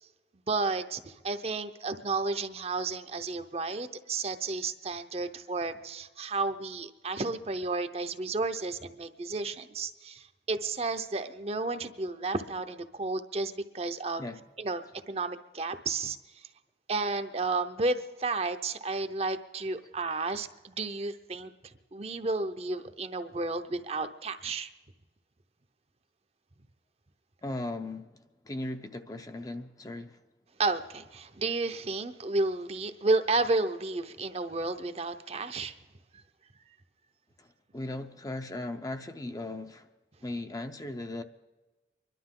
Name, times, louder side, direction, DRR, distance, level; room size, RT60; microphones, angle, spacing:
voice 1, 0.5-14.2 14.6-14.8 15.1-16.2 16.9-21.5 21.9-24.7 30.6-35.7, right 3 dB, 35° right, 0.7 m, -32 dB
voice 2, 27.4-30.2 37.4-37.5 37.7-39.9 40.2-41.2, left 2 dB, 20° left, 0.6 m, -37 dB
25.0 x 12.0 x 3.8 m
head